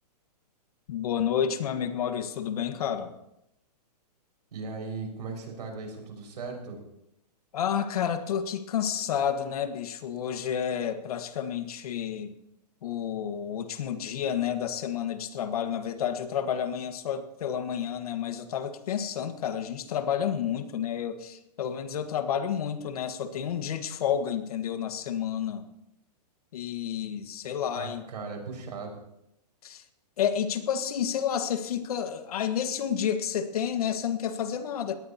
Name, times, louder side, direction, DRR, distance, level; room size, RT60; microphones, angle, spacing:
voice 1, 0.9-3.1 7.5-12.3 12.8-25.6 26.5-28.0 29.6-29.8 30.2-35.0, left 8 dB, 60° left, 8 dB, 1.7 m, -30 dB
voice 2, 4.5-6.8 27.7-28.9, right 4 dB, 80° right, 1 dB, 5.8 m, -37 dB
20.5 x 18.0 x 2.9 m, 0.83 s
hypercardioid pair, 155°, 21 cm